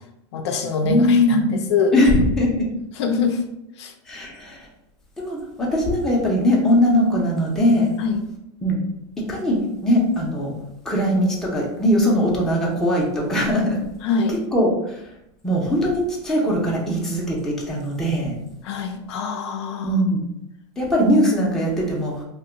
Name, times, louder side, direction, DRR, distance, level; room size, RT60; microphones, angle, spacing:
voice 1, 0.3-1.4 1.7-2.1 3.0-3.4 3.8-3.9 8.0-8.2 14.0-14.4 18.6-20.0, left 5 dB, 65° left, 5 dB, 0.5 m, -24 dB
voice 2, 0.8-2.7 4.1-4.7 5.2-7.9 8.6-8.8 9.3-9.6 9.8-10.5 10.8-13.8 14.3-15.0 15.4-18.3 19.8-20.2 20.8-22.2, equal, 5° left, -4 dB, 0.6 m, -20 dB
2.7 x 2.2 x 3.8 m, 0.82 s
supercardioid pair, 155°, 15 cm